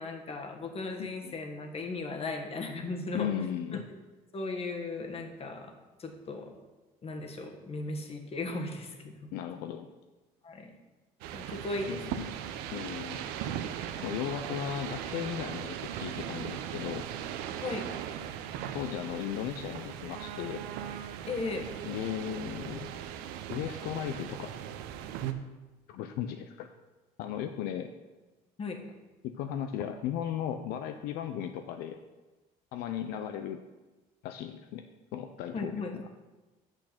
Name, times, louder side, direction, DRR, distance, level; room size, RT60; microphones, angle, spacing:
voice 1, 0.0-3.5 3.7-3.8 4.3-5.7 6.0-6.5 7.0-8.9 9.2-9.3 10.4-10.7 11.3-12.3 17.6-17.9 21.3-21.7 28.6-28.8 35.5-35.9, left 3 dB, 40° left, 4 dB, 1.4 m, -36 dB
voice 2, 1.0-1.3 3.1-3.8 9.3-9.9 11.9-12.4 12.7-13.2 14.0-17.1 18.7-20.6 21.8-22.9 23.5-24.5 25.9-26.7 27.2-27.9 29.2-32.0 32.7-33.6 34.2-34.9 35.1-36.0, left 10 dB, 80° left, 7 dB, 0.5 m, -36 dB
sound 1, 11.2-25.3, right 10 dB, 85° right, 0.6 m, -38 dB
6.6 x 6.2 x 5.8 m, 1.1 s
supercardioid pair, 85°, 16 cm